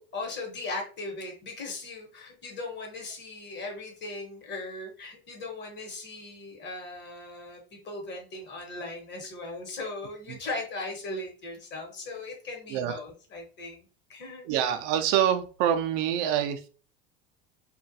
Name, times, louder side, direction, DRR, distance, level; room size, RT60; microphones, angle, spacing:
voice 1, 0.0-13.8 14.1-14.7, left 2 dB, 40° left, 2 dB, 1.1 m, -38 dB
voice 2, 14.4-16.7, right 10 dB, 60° right, 7 dB, 0.4 m, -26 dB
2.3 x 2.2 x 2.6 m, 0.38 s
hypercardioid pair, 90°, 29 cm